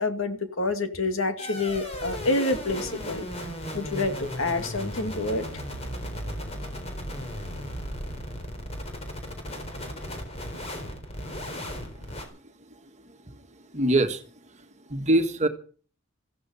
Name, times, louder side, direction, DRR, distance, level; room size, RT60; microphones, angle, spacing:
voice 1, 0.0-3.3 3.7-5.5, left 2 dB, 70° left, 7 dB, 2.2 m, -27 dB
sound 1, 1.4-12.3, equal, 30° left, 4.0 m, -36 dB
voice 2, 13.3-14.2 14.5-14.6 14.9-15.5, right 1 dB, 35° right, 7 dB, 1.7 m, -25 dB
15.5 x 13.0 x 5.7 m, 0.40 s
head